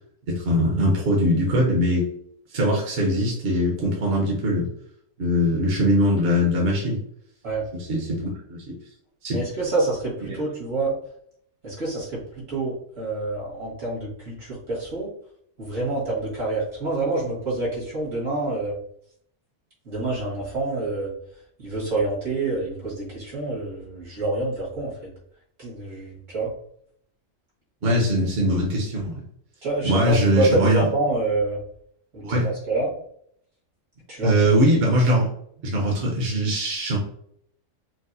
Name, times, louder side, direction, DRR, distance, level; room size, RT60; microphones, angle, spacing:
voice 1, 0.3-2.1 2.5-4.7 5.2-7.0 7.9-8.6 9.2-9.4 10.3-10.4 27.8-29.2 29.8-30.8 32.2-32.5 34.2-35.2 35.6-37.0, equal, 55° right, -2 dB, 1.0 m, -21 dB
voice 2, 9.3-10.9 11.6-15.1 15.6-18.7 19.9-21.1 21.6-24.9 25.6-26.5 29.6-31.6 32.1-32.9 34.1-34.6, right 2 dB, 75° right, -6 dB, 2.1 m, -27 dB
4.6 x 2.0 x 2.6 m, 0.67 s
omnidirectional pair, 1.3 m